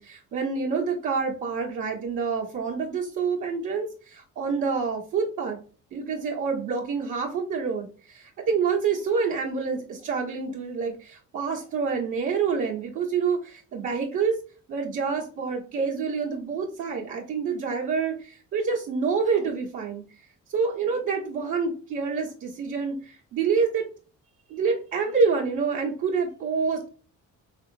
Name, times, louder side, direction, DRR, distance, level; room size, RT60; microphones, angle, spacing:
voice 1, 0.0-5.6 5.9-14.4 14.7-20.0 20.5-23.9 24.5-26.9, right 5 dB, 80° right, -7 dB, 1.2 m, -27 dB
3.8 x 2.9 x 2.7 m, 0.38 s
cardioid pair, 90°, 30 cm